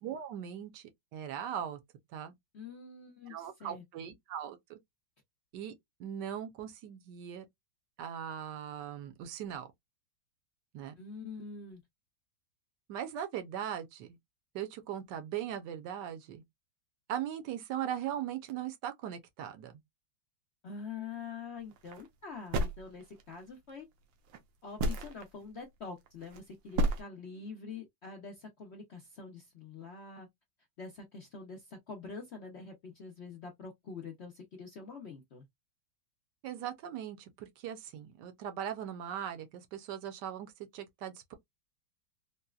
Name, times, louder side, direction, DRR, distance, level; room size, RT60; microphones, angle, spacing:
voice 1, 0.0-1.8 2.1-2.3 3.3-4.8 5.5-5.7 6.0-7.4 8.0-9.7 10.7-10.9 12.9-14.2 14.5-16.4 17.1-19.8 36.4-41.3, right 9 dB, 70° right, 1.2 m, -39 dB
voice 2, 2.5-3.8 11.0-11.8 20.6-23.9 24.6-30.3 30.8-35.4, left 5 dB, 70° left, 0.6 m, -45 dB
sound 1, 21.7-22.1 22.5-23.4 24.3-24.4 24.8-25.2 26.1-26.4 26.7-27.0, right 1 dB, 85° right, 1.5 m, -30 dB
4.0 x 2.1 x 2.3 m
omnidirectional pair, 2.1 m